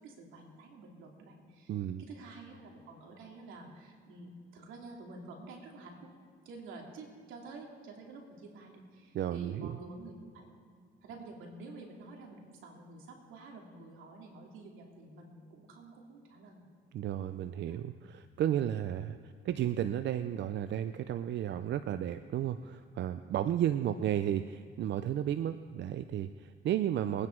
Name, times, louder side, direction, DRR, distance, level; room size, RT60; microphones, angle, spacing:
voice 1, 0.0-6.1 6.4-10.5 11.0-16.7 17.6-17.9 23.9-24.2, right 3 dB, 90° right, 0 dB, 2.7 m, -49 dB
voice 2, 1.7-2.0 9.1-9.8 16.9-27.3, right 10 dB, 65° right, 11 dB, 0.5 m, -33 dB
22.5 x 9.7 x 4.5 m, 2.2 s
cardioid pair, 90°, 20 cm